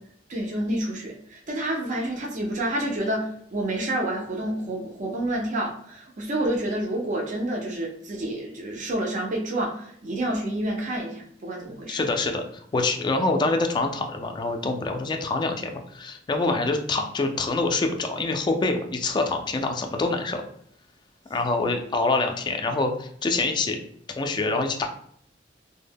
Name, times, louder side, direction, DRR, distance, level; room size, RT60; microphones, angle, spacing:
voice 1, 0.3-12.0, right 1 dB, 45° right, -1 dB, 0.5 m, -29 dB
voice 2, 11.9-12.4 12.7-20.4 21.3-23.8 24.2-24.9, left 3 dB, 25° left, 4 dB, 0.3 m, -25 dB
2.1 x 2.0 x 3.3 m, 0.65 s
head